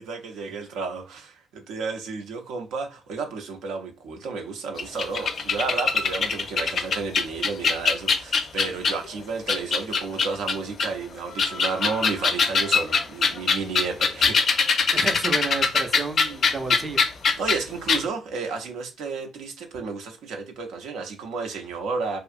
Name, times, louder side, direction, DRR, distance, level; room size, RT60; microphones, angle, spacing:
voice 1, 0.0-14.6 17.4-22.2, right 4 dB, 90° right, 0.5 m, -32 dB
sound 1, 4.8-9.1 9.5-10.9 11.3-17.6 17.9-18.0, left 5 dB, 55° left, 0.4 m, -22 dB
voice 2, 14.9-17.0, right 3 dB, 30° right, 0.4 m, -31 dB
2.6 x 2.4 x 2.4 m
cardioid pair, 90°, 0 cm